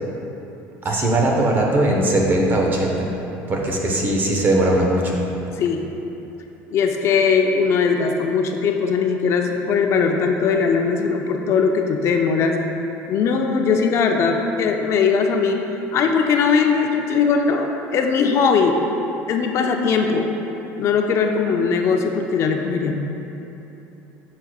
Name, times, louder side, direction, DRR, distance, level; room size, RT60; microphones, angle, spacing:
voice 1, 0.8-3.1 3.5-5.2, right 1 dB, 35° right, -1 dB, 0.9 m, -19 dB
voice 2, 5.6-5.9 6.7-12.6 13.1-15.6 15.9-18.7 19.3-20.3 20.8-23.0, left 5 dB, 50° left, 3 dB, 0.5 m, -20 dB
7.9 x 6.0 x 2.3 m, 3.0 s
supercardioid pair, 120°, 6 cm